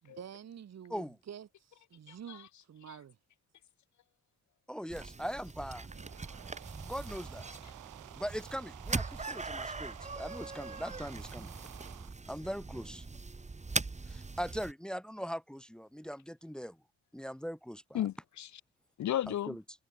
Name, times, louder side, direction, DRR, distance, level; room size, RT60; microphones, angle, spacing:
voice 1, 0.0-3.2, right 9 dB, 60° right, 6.6 m, -48 dB
voice 2, 2.1-3.0 7.6-7.7 17.9-18.6 19.0-19.6, left 12 dB, 70° left, 2.0 m, -36 dB
voice 3, 4.7-5.9 6.8-7.4 8.2-11.6 12.3-13.1 14.1-16.8 17.1-18.0 19.5-19.6, equal, 5° left, 1.5 m, -40 dB
sound 1, 4.9-14.7, right 3 dB, 25° right, 4.7 m, -41 dB
sound 2, 5.8-12.1, right 15 dB, 90° right, 5.0 m, -52 dB
cardioid pair, 90°, 30 cm